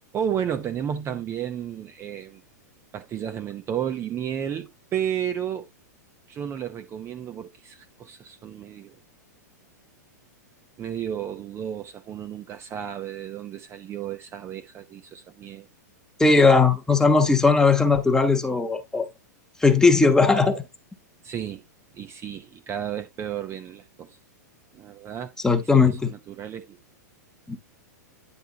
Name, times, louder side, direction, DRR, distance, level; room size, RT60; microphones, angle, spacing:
voice 1, 0.1-2.4 2.9-5.7 6.3-9.0 10.8-15.7 21.2-21.6 21.9-24.2 24.7-25.3 25.6-26.8, right 9 dB, 25° right, 0.8 m, -32 dB
voice 2, 16.2-19.1 19.6-20.6 25.4-26.1 27.5-27.6, left 4 dB, 5° left, 1.3 m, -18 dB
9.9 x 3.4 x 4.0 m
hypercardioid pair, 120°, 10 cm